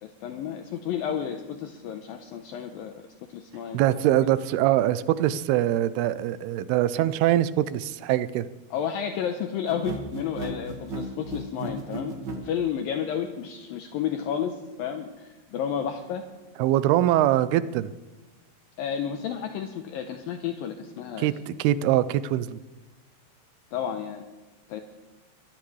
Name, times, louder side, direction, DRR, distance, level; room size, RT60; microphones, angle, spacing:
voice 1, 0.0-3.0 3.3-3.8 8.7-12.2 12.4-16.2 18.8-21.3 23.7-24.3 24.7-24.8, left 8 dB, 75° left, 5 dB, 2.3 m, -31 dB
voice 2, 3.7-8.5 16.6-17.9 21.2-22.6, right 13 dB, 80° right, 15 dB, 2.5 m, -23 dB
sound 1, 9.7-12.5, right 2 dB, 50° right, 1.3 m, -34 dB
23.0 x 15.0 x 3.2 m, 1.2 s
omnidirectional pair, 4.7 m